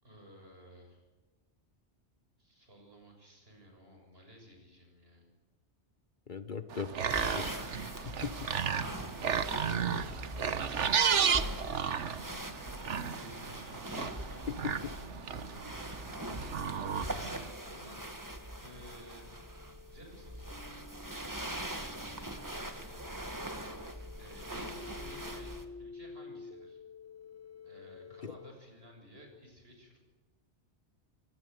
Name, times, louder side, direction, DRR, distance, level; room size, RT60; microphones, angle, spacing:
voice 1, 0.0-1.0 2.4-5.3 10.2-10.4 11.9-12.5 13.0-14.4 14.7-16.0 17.7-18.1 18.6-19.5 19.9-26.8 27.6-30.0, equal, 55° right, 3 dB, 7.3 m, -56 dB
voice 2, 6.3-8.5 14.6-14.9 28.2-28.3, left 6 dB, 45° left, 11 dB, 1.1 m, -40 dB
sound 1, 6.7-17.5, right 7 dB, 80° right, 1.4 m, -33 dB
sound 2, 7.1-25.6, right 1 dB, 15° right, 1.8 m, -42 dB
sound 3, 15.3-28.5, left 4 dB, 15° left, 1.4 m, -52 dB
23.5 x 20.0 x 9.4 m, 1.2 s
omnidirectional pair, 1.2 m